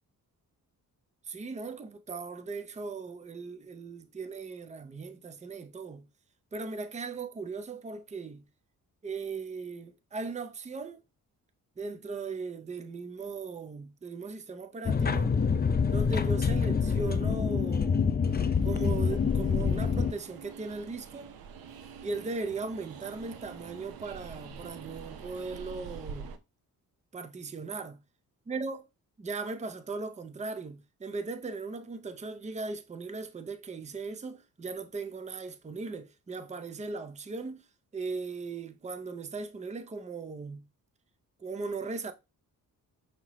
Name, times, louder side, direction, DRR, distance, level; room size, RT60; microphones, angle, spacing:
voice 1, 1.3-6.1 6.5-8.4 9.0-11.0 11.8-15.3 15.9-18.1 18.6-21.3 22.0-26.3 27.1-28.0 28.5-28.9 29.2-37.7 37.9-40.6 41.4-42.1, right 4 dB, 20° right, 0.6 m, -38 dB
sound 1, 14.9-20.1, left 5 dB, 25° left, 0.5 m, -26 dB
Train, 18.2-26.4, right 6 dB, 75° right, 0.7 m, -46 dB
5.7 x 2.9 x 3.0 m
cardioid pair, 75°, 36 cm